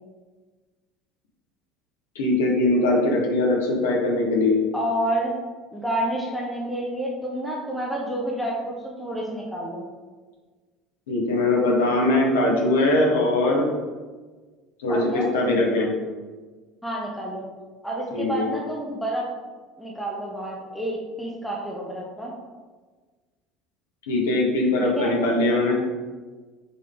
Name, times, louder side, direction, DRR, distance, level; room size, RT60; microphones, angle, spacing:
voice 1, 2.1-4.6 11.1-13.6 14.8-15.9 18.1-18.5 24.1-25.8, left 2 dB, 75° left, -1 dB, 1.3 m, -21 dB
voice 2, 4.7-5.4 5.7-9.8 14.9-15.3 16.8-17.4 17.8-19.3 19.8-22.3 24.8-25.1, right 1 dB, 5° left, -4 dB, 1.2 m, -29 dB
6.7 x 3.7 x 3.8 m, 1.4 s
figure-of-eight pair, 65°, 0 cm